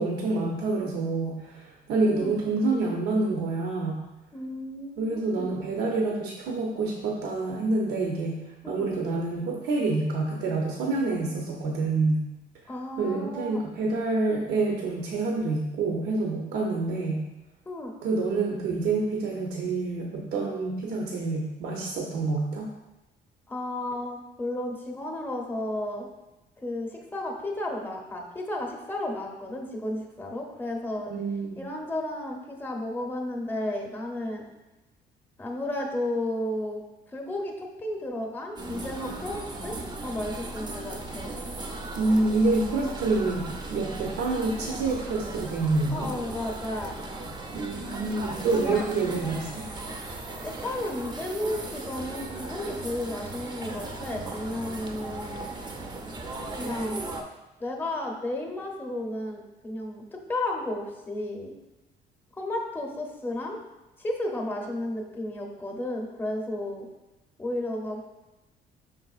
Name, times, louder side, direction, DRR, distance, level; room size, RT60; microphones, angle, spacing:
voice 1, 0.0-4.0 5.0-12.3 13.0-17.2 18.0-22.7 31.1-31.6 41.9-46.1 47.5-49.7, right 3 dB, 75° right, -1 dB, 0.6 m, -27 dB
voice 2, 2.0-2.3 4.3-5.5 8.6-8.9 12.7-13.6 17.7-17.9 23.5-26.1 26.6-31.1 31.6-34.4 35.4-36.8 37.1-39.7 40.0-41.3 45.9-47.0 48.5-48.8 50.4-55.6 56.6-57.0 57.6-61.6 62.4-63.6 64.0-66.9 67.4-68.0, left 1 dB, 10° left, 1 dB, 0.7 m, -33 dB
sound 1, 38.6-57.2, right 2 dB, 25° right, 0.5 m, -37 dB
5.2 x 3.8 x 2.4 m, 1.0 s
cardioid pair, 110°, 17 cm